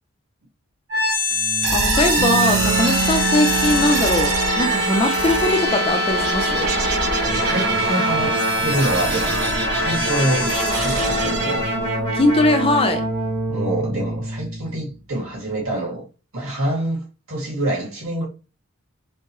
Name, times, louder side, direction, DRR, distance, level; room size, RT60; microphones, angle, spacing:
sound 1, 0.9-14.8, right 1 dB, 50° right, 1.7 m, -22 dB
voice 1, 1.7-6.7 12.1-13.1, left 2 dB, 25° left, 0.5 m, -20 dB
sound 2, 2.2-14.0, right 6 dB, 25° right, 0.7 m, -31 dB
voice 2, 7.2-8.4 8.6-9.4 9.7-10.5 10.8-11.6 13.5-16.0 16.3-18.3, right 1 dB, 75° right, 2.0 m, -26 dB
4.5 x 2.1 x 3.0 m
head